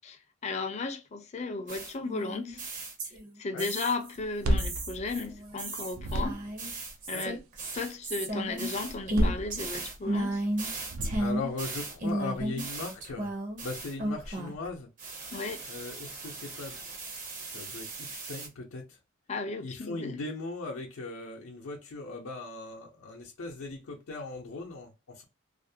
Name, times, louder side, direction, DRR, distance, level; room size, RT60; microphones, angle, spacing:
voice 1, 0.0-2.6 3.4-6.4 7.1-7.4 7.7-10.4 15.3-15.6 19.3-20.2, left 3 dB, 30° left, 0.4 m, -35 dB
sound 1, 1.7-3.3 3.6-4.2 4.6-14.7 15.0-18.5, right 1 dB, 40° right, 0.6 m, -35 dB
sound 2, 4.2-5.6 5.9-6.7 8.9-10.1 10.8-11.6, equal, 80° right, 0.4 m, -31 dB
voice 2, 11.2-13.3 13.6-14.9 15.7-16.8 17.4-19.0 19.6-25.2, left 3 dB, 90° left, 0.5 m, -39 dB
2.4 x 2.0 x 2.6 m
head